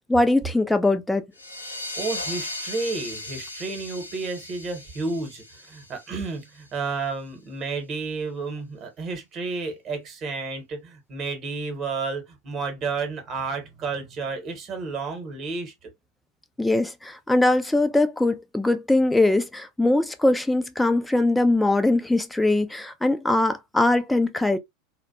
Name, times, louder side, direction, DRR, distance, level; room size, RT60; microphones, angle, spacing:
voice 1, 0.1-1.2 16.6-24.6, left 2 dB, 5° left, 0.3 m, -21 dB
sound 1, 1.3-6.7, left 1 dB, 90° left, 0.5 m, -37 dB
voice 2, 1.9-15.9, right 4 dB, 35° right, 1.0 m, -31 dB
2.4 x 2.1 x 2.4 m
figure-of-eight pair, 80°, 0 cm